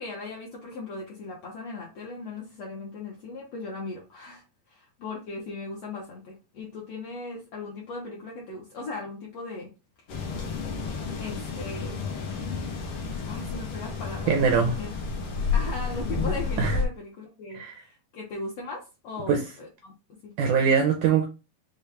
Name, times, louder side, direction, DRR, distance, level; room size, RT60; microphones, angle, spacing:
voice 1, 0.0-9.7 11.2-12.0 13.3-14.9 15.5-19.3 19.6-20.3, left 3 dB, 70° left, -2 dB, 1.6 m, -38 dB
sound 1, 10.1-16.8, left 5 dB, 90° left, 1.2 m, -31 dB
voice 2, 14.3-14.8 16.6-16.8 17.5-17.8 19.3-19.4 20.4-21.3, right 6 dB, 85° right, 3 dB, 1.7 m, -22 dB
6.3 x 2.3 x 3.4 m, 0.29 s
omnidirectional pair, 4.0 m